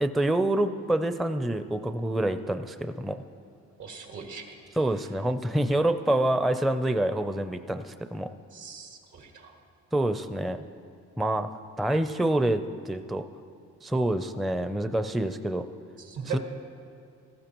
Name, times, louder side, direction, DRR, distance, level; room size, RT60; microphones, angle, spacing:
voice 1, 0.0-3.2 4.7-8.3 9.9-10.6 11.2-11.5 11.8-13.2 13.8-15.6 16.3-16.4, right 1 dB, ahead, 8 dB, 0.4 m, -27 dB
voice 2, 3.8-4.5 8.5-9.6 16.0-16.4, right 8 dB, 75° right, 2 dB, 1.9 m, -39 dB
17.5 x 14.5 x 3.0 m, 2.4 s
cardioid pair, 90°, 30 cm